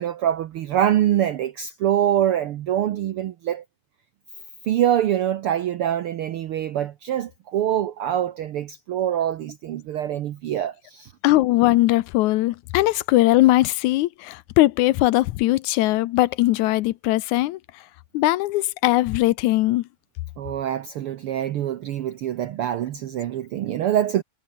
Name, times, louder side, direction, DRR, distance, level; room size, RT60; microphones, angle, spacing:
voice 1, 0.0-3.6 4.7-11.1 20.4-24.2, right 11 dB, 75° right, 1.3 m, -24 dB
voice 2, 11.2-17.6 18.1-19.8, left 17 dB, 80° left, 2.0 m, -20 dB
omnidirectional pair, 3.5 m